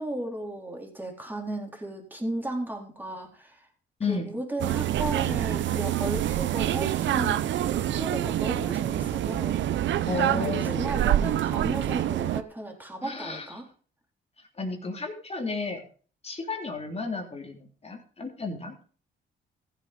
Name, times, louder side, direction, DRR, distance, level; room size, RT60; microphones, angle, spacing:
voice 1, 0.0-3.7 4.1-9.6 9.9-13.7, right 1 dB, 10° right, 1 dB, 3.9 m, -35 dB
sound 1, 4.6-12.4, right 12 dB, 70° right, 0.7 m, -26 dB
voice 2, 10.1-10.9 13.0-13.5 14.6-15.8 16.2-18.7, left 4 dB, 30° left, 2 dB, 3.4 m, -33 dB
15.0 x 7.9 x 5.2 m, 0.41 s
cardioid pair, 90°, 20 cm